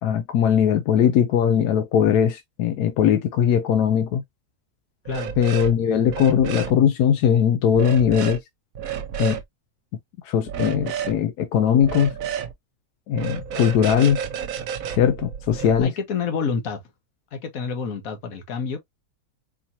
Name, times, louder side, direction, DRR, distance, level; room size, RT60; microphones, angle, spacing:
voice 1, 0.0-4.2 5.4-8.4 9.2-9.4 10.2-12.1 13.1-14.2 15.0-15.9, left 8 dB, 85° left, 1.1 m, -20 dB
voice 2, 5.0-5.3 15.8-16.8 17.3-18.8, left 5 dB, 65° left, 1.5 m, -28 dB
sound 1, 5.1-5.7 6.0-6.7 7.7-8.4 8.8-9.4 10.5-11.2 11.8-12.5 13.1-15.8, right 8 dB, 65° right, 1.1 m, -31 dB
4.5 x 2.8 x 2.6 m
omnidirectional pair, 1.6 m